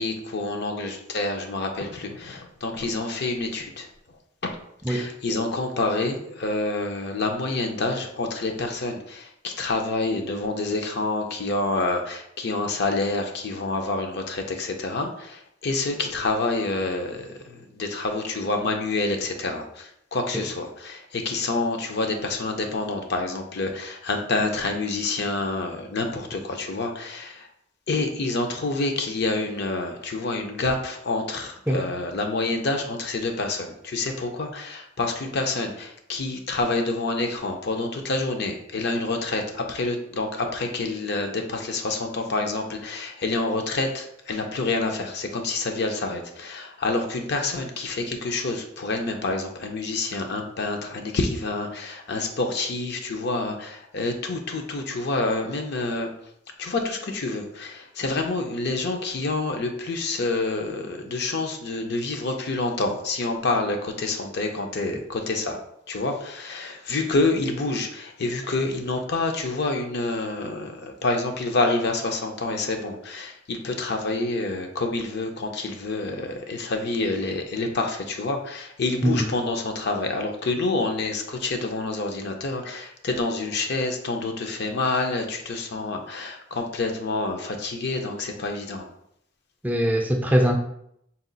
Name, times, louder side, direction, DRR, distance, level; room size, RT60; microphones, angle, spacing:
voice 1, 0.0-3.9 4.4-4.5 4.9-27.5 27.9-56.1 56.6-65.6 65.9-88.9, left 3 dB, 60° left, 4 dB, 0.6 m, -27 dB
voice 2, 89.6-90.6, equal, 10° right, 2 dB, 0.3 m, -21 dB
4.1 x 2.3 x 3.9 m, 0.73 s
head